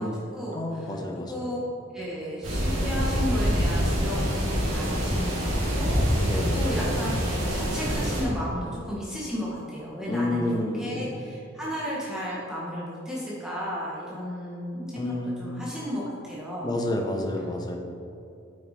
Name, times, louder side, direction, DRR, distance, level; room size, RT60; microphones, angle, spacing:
voice 1, 0.0-1.0 1.3-1.6 1.9-10.5 10.8-16.8, equal, 5° right, -7 dB, 1.4 m, -34 dB
voice 2, 0.5-1.3 6.2-6.7 10.1-11.3 14.9-15.5 16.6-17.8, left 1 dB, 20° left, 2 dB, 0.9 m, -29 dB
sound 1, 2.4-8.2, equal, 70° right, 2.2 m, -25 dB
8.7 x 6.6 x 4.3 m, 2.6 s
head